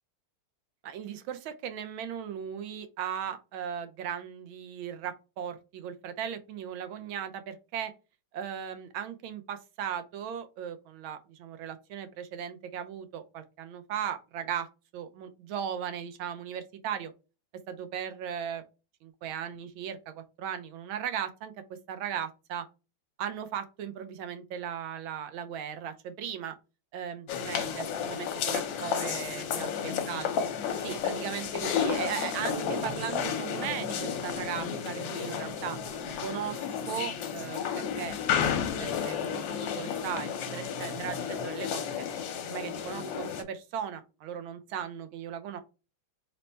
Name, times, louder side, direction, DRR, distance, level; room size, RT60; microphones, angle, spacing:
voice 1, 0.8-7.9 8.3-14.7 14.9-17.1 17.7-18.6 19.0-21.5 21.9-22.7 23.2-26.5 26.9-30.3 30.8-35.8 36.2-37.6 38.0-38.2 38.6-39.2 39.7-42.0 42.5-45.6, right 8 dB, 85° right, 1.5 m, -37 dB
sound 1, 27.3-43.4, left 8 dB, 75° left, 1.4 m, -32 dB
sound 2, 32.4-39.2 40.2-42.0, right 7 dB, 65° right, 1.2 m, -46 dB
4.0 x 2.1 x 4.3 m
omnidirectional pair, 2.2 m